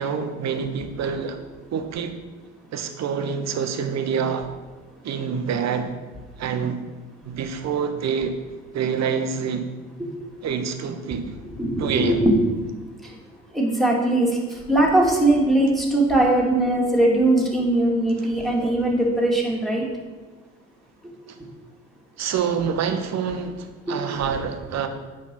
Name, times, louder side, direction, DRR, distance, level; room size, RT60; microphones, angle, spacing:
voice 1, 0.0-1.4 1.7-2.2 2.7-4.5 5.0-5.9 6.4-6.8 7.2-8.4 8.7-9.7 10.4-11.3 11.8-12.3 18.2-18.3 22.2-24.9, right 6 dB, 40° right, 8 dB, 1.0 m, -26 dB
voice 2, 11.5-12.3 13.5-14.3 14.7-19.8 23.9-24.0, right 1 dB, ahead, -3 dB, 2.3 m, -20 dB
8.6 x 5.6 x 4.4 m, 1.3 s
figure-of-eight pair, 60°, 40 cm